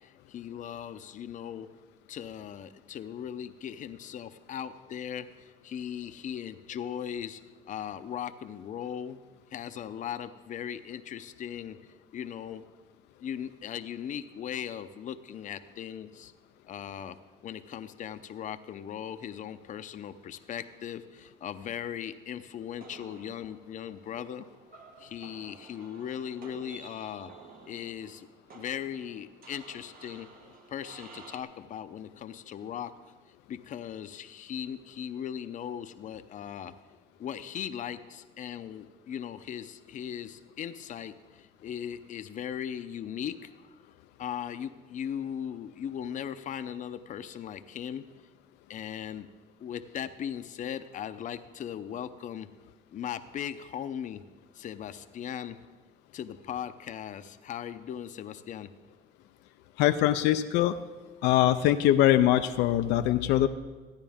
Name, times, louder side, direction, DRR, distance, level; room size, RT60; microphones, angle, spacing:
voice 1, 0.0-1.7 2.1-7.4 7.7-9.2 9.5-11.8 12.1-12.6 13.2-16.3 16.7-17.2 17.4-24.4 25.0-27.3 27.6-28.3 28.5-30.3 30.7-32.9 33.5-36.7 37.2-43.5 44.2-48.1 48.7-49.3 49.6-52.5 52.9-54.2 54.5-55.6 56.1-58.7, left 9 dB, 50° left, 11 dB, 0.6 m, -38 dB
sound 1, 22.8-31.4, right 3 dB, 60° right, 1.4 m, -52 dB
voice 2, 59.8-60.7 61.2-63.5, left 13 dB, 85° left, 8 dB, 0.5 m, -23 dB
14.5 x 9.8 x 3.5 m, 1.3 s
cardioid pair, 110°, 17 cm